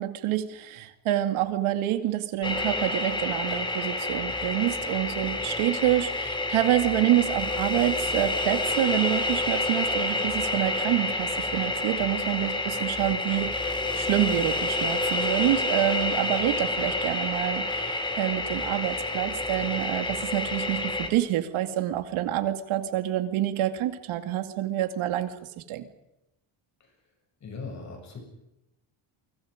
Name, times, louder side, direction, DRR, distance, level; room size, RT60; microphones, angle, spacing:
voice 1, 0.0-25.3 25.7-25.9, right 13 dB, 80° right, 8 dB, 2.5 m, -27 dB
sound 1, 2.4-21.1, left 2 dB, 10° left, 2.4 m, -29 dB
voice 2, 27.4-28.2, left 4 dB, 35° left, 4 dB, 7.6 m, -39 dB
29.5 x 24.0 x 5.2 m, 0.91 s
cardioid pair, 180°, 48 cm